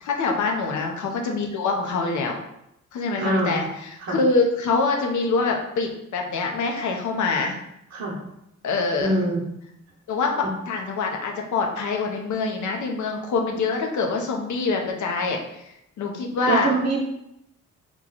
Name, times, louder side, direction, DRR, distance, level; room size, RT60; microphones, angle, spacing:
voice 1, 0.0-2.4 2.9-7.6 8.6-9.1 10.1-15.7 16.0-16.7, left 4 dB, 75° left, 1 dB, 0.7 m, -25 dB
voice 2, 3.2-3.6 4.0-4.2 7.9-8.2 9.0-9.4 10.4-10.5 16.4-17.0, right 2 dB, 60° right, -1 dB, 0.9 m, -24 dB
3.0 x 2.3 x 3.9 m, 0.81 s
cardioid pair, 75°, 30 cm